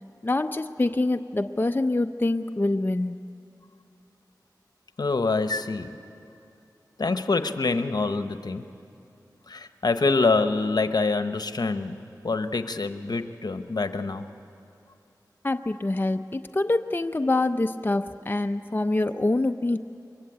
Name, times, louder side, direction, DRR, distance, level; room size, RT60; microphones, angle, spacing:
voice 1, 0.2-3.2 15.4-19.8, left 2 dB, 30° left, 7 dB, 0.7 m, -25 dB
voice 2, 5.0-5.9 7.0-8.7 9.5-12.0 12.2-14.3, left 3 dB, 65° left, 9 dB, 1.1 m, -25 dB
23.5 x 22.0 x 8.8 m, 2.6 s
cardioid pair, 45°, 7 cm